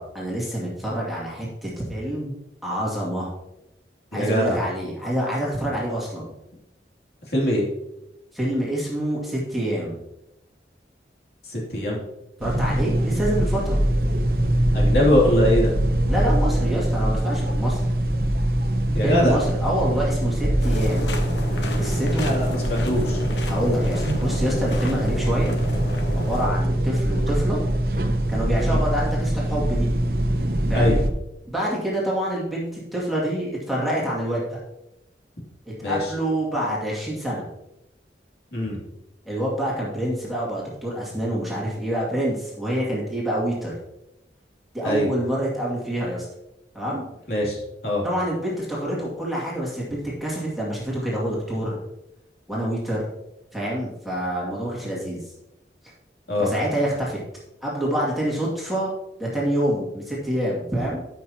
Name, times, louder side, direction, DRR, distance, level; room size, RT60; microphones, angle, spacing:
voice 1, 0.0-2.3 2.6-3.3 4.1-6.3 8.3-10.0 12.4-13.8 16.1-17.9 19.0-21.1 21.7-22.3 23.5-25.5 26.1-27.6 28.3-29.9 30.7-31.0 31.4-34.6 35.6-37.4 39.2-43.8 44.7-46.3 46.7-47.0 48.0-51.8 52.5-53.0 53.5-55.3 55.8-55.9 56.4-57.2 57.6-58.9 59.2-61.0, right 1 dB, ahead, -6 dB, 2.3 m, -27 dB
voice 2, 4.1-4.6 7.3-7.7 11.4-12.0 14.7-15.7 18.9-19.4 22.2-23.2 28.6-28.8 30.7-31.0 35.8-36.0 38.5-38.8 44.8-45.1 47.3-48.0 56.3-56.5, left 1 dB, 65° left, -4 dB, 2.9 m, -22 dB
sound 1, 12.4-31.1, right 1 dB, 55° right, 0.9 m, -23 dB
sound 2, 20.6-26.5, left 1 dB, 80° left, 1.2 m, -32 dB
14.0 x 6.0 x 2.9 m, 0.89 s
head